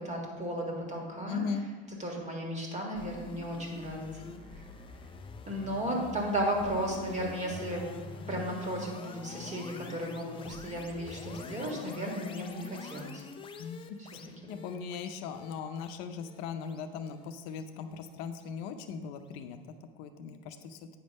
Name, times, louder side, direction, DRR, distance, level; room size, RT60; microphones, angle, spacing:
voice 1, 0.0-1.4 1.9-4.7 5.5-7.8 8.3-13.2 14.0-14.1 14.4-14.6, right 1 dB, 20° right, 0 dB, 1.7 m, -35 dB
voice 2, 1.3-1.6 13.6-13.8 14.1-19.6 20.0-20.8, left 6 dB, 75° left, 7 dB, 0.6 m, -39 dB
sound 1, 2.9-18.1, left 4 dB, 15° left, 0.4 m, -46 dB
8.7 x 3.4 x 5.3 m, 1.4 s
supercardioid pair, 115°, 31 cm